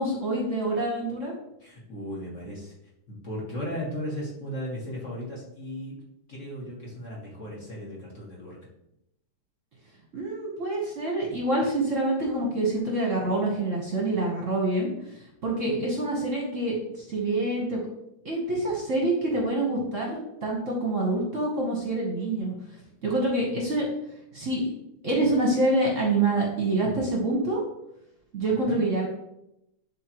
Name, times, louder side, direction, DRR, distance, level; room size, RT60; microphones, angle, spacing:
voice 1, 0.0-1.3 10.1-14.9 15.4-17.8 18.2-22.5 23.0-23.9 24.3-24.6 25.0-27.6 28.3-29.1, right 2 dB, 40° right, -2 dB, 1.4 m, -26 dB
voice 2, 1.6-2.7 3.1-5.9 6.3-8.6 28.7-28.8, equal, 40° left, -4 dB, 1.7 m, -36 dB
11.0 x 3.7 x 3.0 m, 0.82 s
omnidirectional pair, 2.3 m